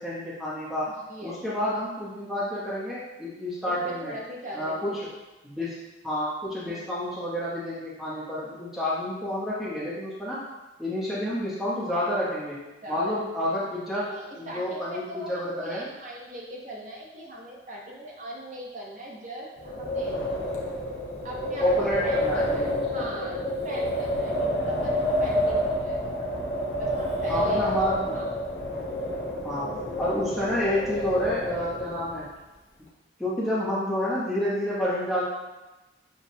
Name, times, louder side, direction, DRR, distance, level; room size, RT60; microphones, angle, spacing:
voice 1, 0.0-0.9 1.2-4.1 4.5-5.1 5.4-5.8 6.0-10.5 10.8-12.6 12.9-14.1 14.4-15.8 21.6-23.1 27.3-28.2 29.4-29.7 30.0-32.3 33.2-35.2, left 1 dB, ahead, -9 dB, 0.9 m, -29 dB
voice 2, 0.9-1.4 3.6-4.9 6.6-6.8 12.8-13.2 14.1-20.2 21.2-26.3 26.8-27.7 28.1-28.3 29.5-29.9, right 1 dB, 40° right, -3 dB, 0.7 m, -40 dB
Wind, 19.6-32.2, equal, 80° left, 0.8 m, -28 dB
6.0 x 2.3 x 2.8 m, 1.1 s
head